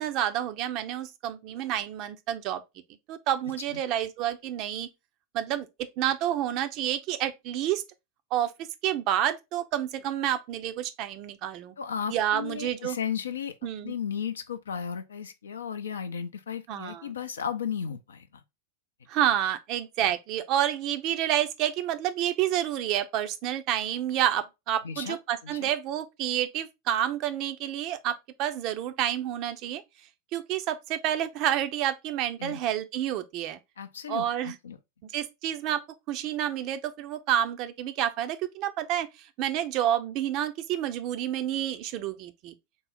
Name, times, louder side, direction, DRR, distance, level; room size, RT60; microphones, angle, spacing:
voice 1, 0.0-2.6 3.1-4.9 5.3-5.7 6.0-7.8 8.3-8.5 8.8-11.7 12.1-13.0 13.6-13.9 16.7-17.1 19.1-29.8 30.3-33.6 34.1-34.6 35.1-35.8 36.1-39.1 39.4-42.5, right 11 dB, 40° right, 0.5 m, -29 dB
voice 2, 11.8-13.5 13.8-18.3 20.0-20.1 24.8-25.2 25.4-25.7 32.4-32.6 33.8-34.8, left 7 dB, 70° left, 0.4 m, -34 dB
3.8 x 2.0 x 4.0 m
figure-of-eight pair, 90°, 0 cm